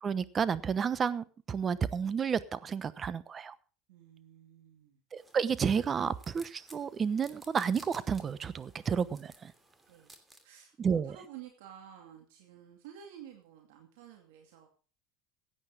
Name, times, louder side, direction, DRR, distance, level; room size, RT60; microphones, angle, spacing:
voice 1, 0.0-3.5 5.1-9.5 10.8-11.2, right 6 dB, 30° right, 17 dB, 1.0 m, -31 dB
voice 2, 3.9-5.0 9.9-10.1 10.4-14.7, right 10 dB, 85° right, 3 dB, 2.4 m, -52 dB
sound 1, 5.2-10.4, right 2 dB, 15° right, 2.8 m, -57 dB
16.5 x 9.0 x 4.9 m, 0.38 s
supercardioid pair, 110°, 0 cm